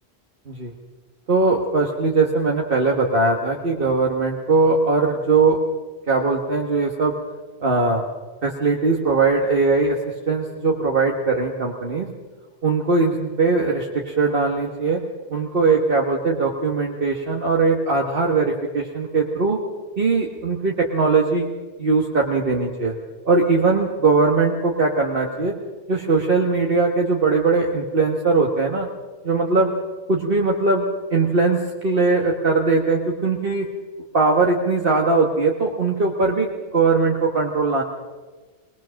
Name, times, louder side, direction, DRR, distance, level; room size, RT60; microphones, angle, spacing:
voice 1, 1.3-5.6 6.1-7.2 7.6-8.1 8.4-12.1 12.6-15.0 15.3-19.6 20.0-21.5 21.8-22.9 23.3-25.5 25.9-28.9 29.2-29.7 30.1-33.7 34.1-37.8, right 3 dB, 60° right, 0 dB, 1.6 m, -20 dB
21.0 x 20.0 x 6.4 m, 1.3 s
omnidirectional pair, 1.0 m